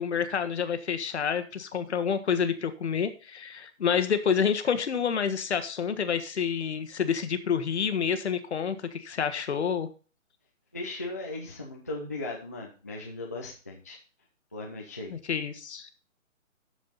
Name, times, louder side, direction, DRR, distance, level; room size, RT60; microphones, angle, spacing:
voice 1, 0.0-9.9 15.1-15.9, left 7 dB, 55° left, 10 dB, 1.4 m, -28 dB
voice 2, 10.7-14.0 14.5-15.1, left 2 dB, 10° left, -2 dB, 0.5 m, -37 dB
13.0 x 5.0 x 4.0 m, 0.36 s
hypercardioid pair, 155°, 41 cm